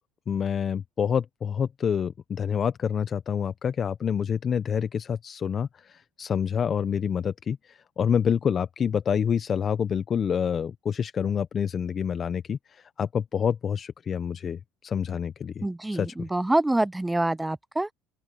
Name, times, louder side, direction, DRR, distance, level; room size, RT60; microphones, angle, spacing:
voice 1, 0.3-15.6 15.9-16.3, left 7 dB, 40° left, 0.7 m, -27 dB
voice 2, 15.6-17.9, right 1 dB, 10° right, 0.5 m, -26 dB
open air
supercardioid pair, 95°, 0 cm